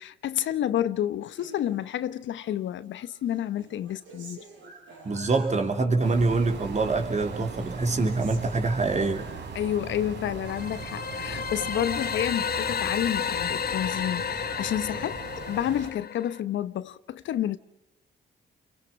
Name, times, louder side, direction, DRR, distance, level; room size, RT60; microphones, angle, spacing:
voice 1, 0.0-4.4 9.5-17.6, left 11 dB, 75° left, 1.0 m, -30 dB
Human voice, 1.4-2.5 2.9-6.1 6.4-7.1 7.4-9.4, right 3 dB, 90° right, 7.9 m, -49 dB
voice 2, 5.0-9.3, right 3 dB, 35° right, 3.6 m, -25 dB
sound 1, 6.0-15.9, right 5 dB, 65° right, 3.7 m, -39 dB
sound 2, 10.5-16.4, left 8 dB, 55° left, 1.2 m, -32 dB
29.5 x 24.0 x 5.9 m
cardioid pair, 80°, 19 cm